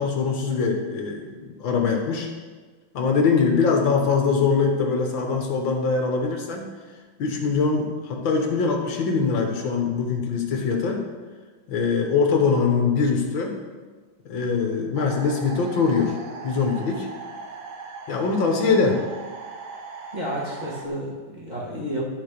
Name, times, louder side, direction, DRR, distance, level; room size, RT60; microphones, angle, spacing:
voice 1, 0.0-2.3 2.9-6.7 7.2-11.0 11.7-13.6 14.3-16.2 16.4-17.1 18.1-19.0, left 5 dB, 70° left, 2 dB, 1.9 m, -22 dB
sound 1, 14.9-20.9, right 4 dB, 75° right, 1.9 m, -39 dB
voice 2, 20.1-22.0, equal, 20° right, -5 dB, 2.1 m, -31 dB
12.5 x 4.4 x 6.6 m, 1.4 s
omnidirectional pair, 2.2 m